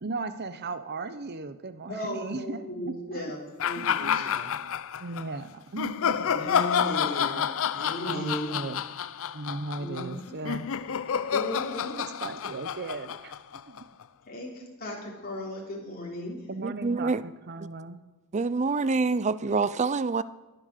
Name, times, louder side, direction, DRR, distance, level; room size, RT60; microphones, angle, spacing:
voice 1, 0.0-3.2 3.8-4.4 5.0-6.3 8.0-8.8 9.3-10.7 12.2-13.3 13.7-13.8 16.5-18.0, right 3 dB, 50° right, 11 dB, 0.9 m, -37 dB
voice 2, 1.9-4.5 6.1-8.5 9.8-10.4 11.3-12.0 14.3-16.4, left 1 dB, 45° left, -3 dB, 3.2 m, -36 dB
sound 1, 3.6-5.2 5.8-14.0, left 8 dB, 65° left, 0.5 m, -29 dB
voice 3, 16.6-17.2 18.3-20.2, right 4 dB, 35° right, 16 dB, 0.5 m, -26 dB
21.0 x 8.0 x 6.7 m, 1.1 s
head